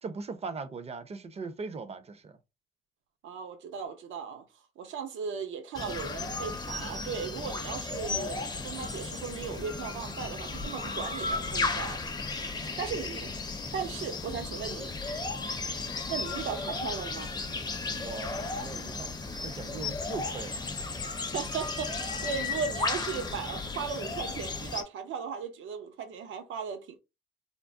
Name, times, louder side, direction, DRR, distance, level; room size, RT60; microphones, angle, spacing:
voice 1, 0.0-2.4 18.0-19.1 19.4-20.6 22.0-22.1, right 4 dB, 30° right, 0.5 m, -39 dB
voice 2, 3.2-4.5 4.8-12.0 12.3-12.4 12.8-13.3 13.7-14.9 16.1-17.3 21.3-27.0, right 6 dB, 80° right, 0.7 m, -37 dB
sound 1, 5.7-24.8, left 3 dB, 20° left, 0.5 m, -35 dB
3.6 x 2.0 x 2.5 m
cardioid pair, 90°, 20 cm